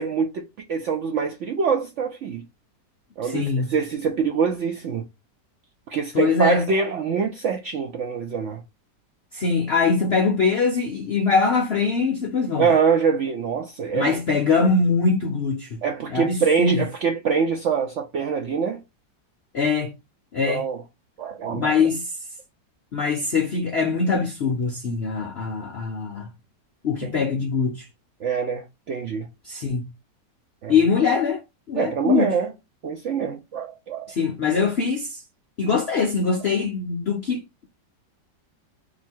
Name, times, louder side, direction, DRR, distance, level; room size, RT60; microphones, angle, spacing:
voice 1, 0.0-2.4 3.2-5.0 5.9-8.6 12.6-14.2 15.8-18.8 20.5-20.8 21.2-21.9 28.2-29.3 30.6-30.7 31.8-32.5 32.8-34.1, right 6 dB, 80° right, 0.6 m, -24 dB
voice 2, 3.2-3.7 6.1-6.6 9.3-12.7 13.9-15.8 16.1-16.8 19.5-19.9 20.3-20.6 21.5-22.1 22.9-26.3 26.8-27.9 29.4-29.8 30.7-31.4 31.7-32.3 34.1-35.2 35.6-37.6, left 4 dB, 70° left, 0.6 m, -22 dB
2.8 x 2.7 x 4.3 m
omnidirectional pair, 1.9 m